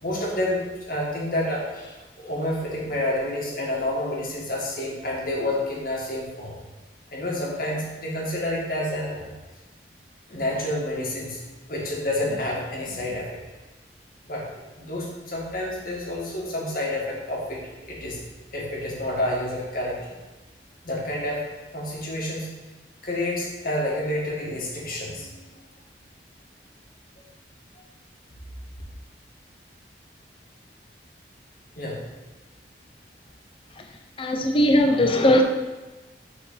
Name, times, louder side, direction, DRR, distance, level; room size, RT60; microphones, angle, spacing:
voice 1, 0.0-6.5 7.1-9.3 10.3-11.4 11.7-13.4 14.3-17.6 17.9-18.2 18.5-20.0 20.8-21.4 21.7-22.5 23.0-25.3 31.8-32.0, left 1 dB, 55° left, -4 dB, 1.9 m, -29 dB
voice 2, 34.2-35.4, left 1 dB, 30° left, 4 dB, 0.7 m, -19 dB
6.9 x 4.3 x 5.7 m, 1.2 s
head